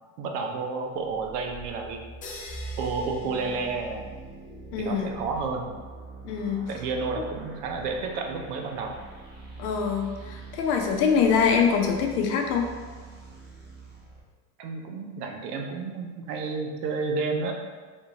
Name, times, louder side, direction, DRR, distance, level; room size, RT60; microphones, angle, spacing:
voice 1, 0.2-2.0 2.8-4.0 4.8-5.7 6.7-9.0 14.6-17.5, right 4 dB, 90° right, 3 dB, 0.6 m, -31 dB
sound 1, 1.0-14.2, right 3 dB, 20° right, 0.7 m, -43 dB
sound 2, 2.2-4.3, left 2 dB, 20° left, 0.4 m, -45 dB
voice 2, 4.7-5.1 6.2-6.7 7.2-7.3 9.6-12.7, left 6 dB, 85° left, 2 dB, 0.7 m, -24 dB
3.6 x 2.4 x 2.8 m, 1.4 s
supercardioid pair, 105°, 45 cm